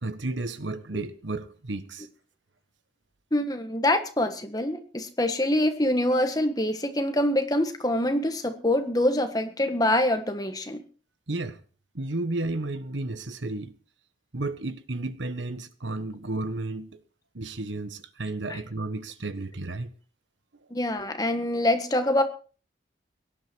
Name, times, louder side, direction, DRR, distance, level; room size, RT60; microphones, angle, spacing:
voice 1, 0.0-2.1 11.3-11.6 11.9-13.7 14.3-17.0 17.3-19.9, right 2 dB, 85° right, 1.4 m, -32 dB
voice 2, 3.3-10.8 18.5-18.6 20.7-22.2, left 1 dB, 20° left, 1.6 m, -25 dB
17.5 x 11.5 x 4.6 m
head